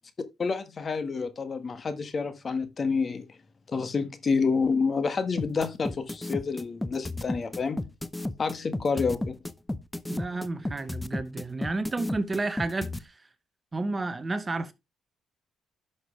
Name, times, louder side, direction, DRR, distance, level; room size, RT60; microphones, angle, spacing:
voice 1, 0.4-3.3 3.7-7.9 8.4-9.3, left 5 dB, 40° left, 1.5 m, -28 dB
sound 1, 5.4-13.0, left 1 dB, 10° left, 0.7 m, -32 dB
voice 2, 10.1-13.2 13.7-14.7, right 2 dB, 25° right, 1.0 m, -31 dB
11.5 x 6.2 x 3.3 m
cardioid pair, 90°, 0 cm